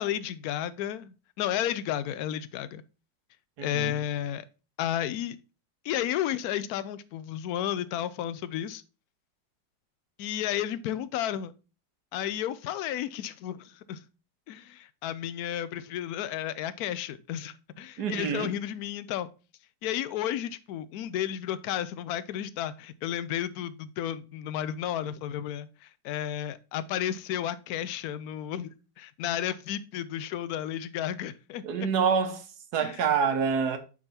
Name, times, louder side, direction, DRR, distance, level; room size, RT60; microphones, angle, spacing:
voice 1, 0.0-2.8 3.6-4.4 4.8-5.4 5.8-8.8 10.2-11.5 12.1-14.0 14.5-19.3 19.8-28.7 29.0-31.9 32.8-33.0, left 11 dB, 70° left, 1.0 m, -32 dB
voice 2, 3.6-4.0 18.0-18.5 31.6-32.5 32.7-33.8, right 6 dB, 65° right, 1.5 m, -27 dB
8.8 x 3.9 x 4.2 m
omnidirectional pair, 2.0 m